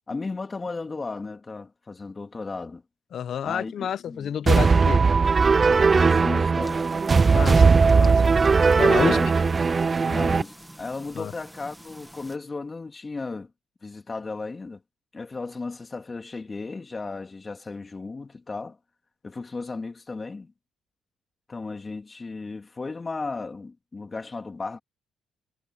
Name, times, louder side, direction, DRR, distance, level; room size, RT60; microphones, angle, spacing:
voice 1, 0.1-2.8 3.4-3.7 4.0-4.3 5.8-6.9 9.0-9.3 10.1-13.5 13.8-14.8 15.1-18.8 19.2-20.5 21.5-24.8, left 3 dB, 25° left, 3.1 m, -35 dB
voice 2, 3.1-5.0 7.3-8.2 8.8-9.2 11.1-11.3, left 9 dB, 65° left, 1.1 m, -29 dB
sound 1, 4.5-10.4, right 4 dB, 35° right, 0.4 m, -18 dB
sound 2, 6.6-12.4, right 1 dB, 5° right, 2.1 m, -47 dB
cardioid pair, 90°, 0 cm